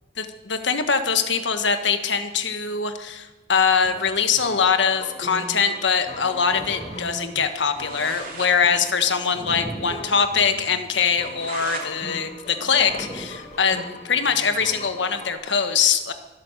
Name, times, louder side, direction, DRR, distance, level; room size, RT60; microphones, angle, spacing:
voice 1, 0.2-16.1, left 6 dB, 90° left, 8 dB, 1.4 m, -23 dB
sound 1, 3.8-15.3, left 2 dB, 40° left, 1.7 m, -40 dB
sound 2, 6.5-7.9 9.3-10.8 12.6-14.1, right 1 dB, 25° right, 1.4 m, -40 dB
sound 3, 7.7-8.5 8.9-9.0 9.2-9.3 9.7-9.8 10.2-10.3 10.9-11.9 12.3-13.6, right 4 dB, 50° right, 2.9 m, -38 dB
25.0 x 8.6 x 6.6 m, 1.1 s
head